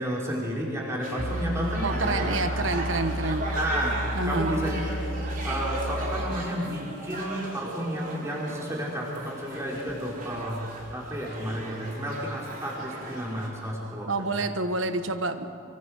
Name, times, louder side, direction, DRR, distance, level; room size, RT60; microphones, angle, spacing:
voice 1, 0.0-2.4 3.5-4.0 4.2-5.0 5.4-10.6 10.9-14.5, equal, 15° right, -4 dB, 4.8 m, -31 dB
sound 1, 1.0-13.5, right 1 dB, 40° right, 4.0 m, -37 dB
sound 2, 1.2-6.5, equal, 85° left, 3.5 m, -32 dB
voice 2, 1.8-3.5 4.1-4.6 14.1-15.5, right 2 dB, 70° right, 9 dB, 1.3 m, -28 dB
24.5 x 24.0 x 6.6 m, 2.4 s
head